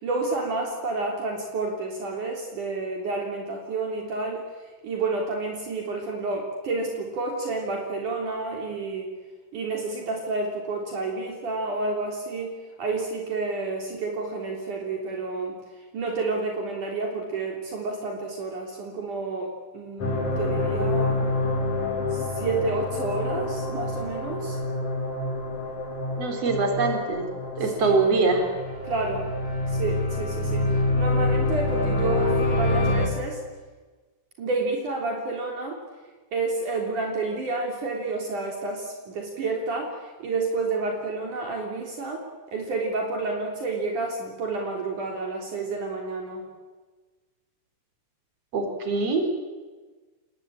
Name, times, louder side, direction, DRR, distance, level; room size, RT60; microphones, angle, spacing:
voice 1, 0.0-4.4 4.8-9.1 9.5-12.5 12.8-15.6 15.9-21.2 22.1-24.6 28.8-29.3 29.7-30.7 30.9-33.4 34.4-35.8 36.3-42.2 42.5-46.4, right 3 dB, 60° right, 1 dB, 4.8 m, -30 dB
sound 1, 20.0-33.1, left 2 dB, 55° left, 6.2 m, -27 dB
voice 2, 26.2-27.3 27.6-28.5 48.5-49.3, right 3 dB, 45° right, 4 dB, 4.9 m, -23 dB
28.5 x 20.5 x 8.8 m, 1.3 s
omnidirectional pair, 4.1 m